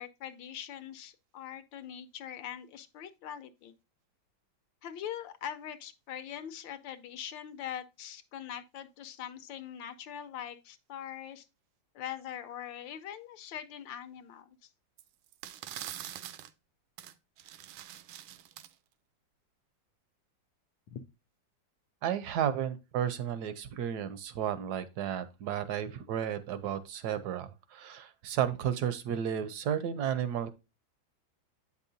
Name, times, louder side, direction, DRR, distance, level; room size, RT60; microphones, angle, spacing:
voice 1, 0.0-3.7 4.8-11.5 11.9-14.7 20.9-21.0, left 10 dB, 75° left, 1.3 m, -42 dB
sound 1, 15.0-15.1 15.3-16.5 17.0-17.1 17.4-18.7, right 12 dB, 90° right, 1.4 m, -44 dB
voice 2, 22.0-30.5, right 9 dB, 70° right, 1.0 m, -33 dB
8.4 x 5.5 x 2.6 m
omnidirectional pair, 2.1 m